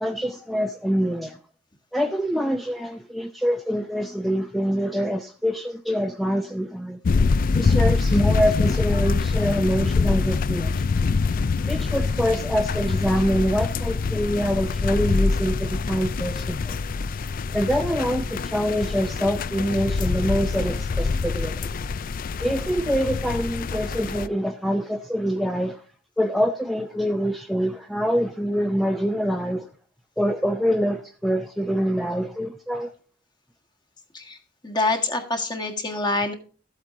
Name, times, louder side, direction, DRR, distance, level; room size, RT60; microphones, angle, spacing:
voice 1, 0.0-1.4 1.9-7.0 7.5-10.8 11.7-16.7 17.5-21.7 22.4-25.8 26.2-29.7 30.2-32.9, equal, ahead, 0.6 m, -25 dB
sound 1, 7.0-24.3, left 4 dB, 45° left, 0.4 m, -25 dB
voice 2, 34.6-36.3, left 2 dB, 25° left, 1.6 m, -25 dB
13.5 x 8.3 x 3.8 m
head